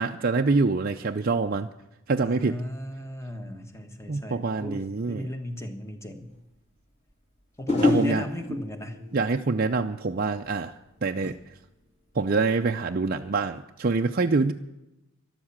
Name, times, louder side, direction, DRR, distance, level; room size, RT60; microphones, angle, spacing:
voice 1, 0.0-1.7 2.1-2.6 4.1-5.3 7.8-8.2 9.1-10.7 11.0-11.3 12.2-14.5, right 3 dB, 40° right, 4 dB, 0.5 m, -25 dB
voice 2, 2.2-6.3 7.6-9.0 11.2-11.3, left 1 dB, 15° left, 7 dB, 1.4 m, -35 dB
sound 1, 6.2-6.4 7.7-10.8 11.1-11.5, left 2 dB, 30° left, 3.8 m, -29 dB
13.0 x 12.0 x 7.3 m, 0.91 s
head